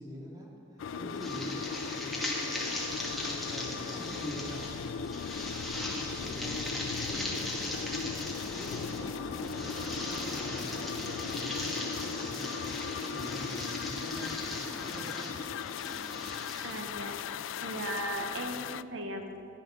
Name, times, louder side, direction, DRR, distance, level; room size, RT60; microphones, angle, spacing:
voice 1, 0.0-2.9 3.2-5.0 5.3-8.2 8.5-15.2, equal, 20° right, -2 dB, 2.1 m, -45 dB
sound 1, 0.8-18.8, left 6 dB, 85° left, 0.3 m, -38 dB
sound 2, 1.2-16.8, left 1 dB, ahead, 2.0 m, -39 dB
voice 2, 16.6-17.2 17.6-19.5, right 1 dB, 80° right, 4 dB, 1.2 m, -37 dB
15.0 x 11.5 x 6.3 m, 2.7 s
head